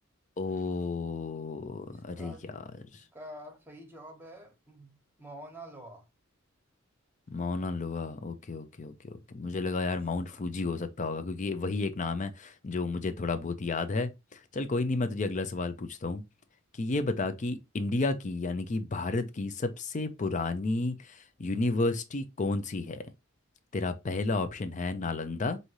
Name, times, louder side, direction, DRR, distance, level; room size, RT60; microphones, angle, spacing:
voice 1, 0.4-2.4 7.3-16.2 16.8-23.0 23.7-25.6, left 3 dB, 35° left, 0.5 m, -32 dB
voice 2, 1.9-2.7 2.9-6.1 10.2-10.4, right 1 dB, 10° right, 1.1 m, -48 dB
5.2 x 2.7 x 3.0 m
head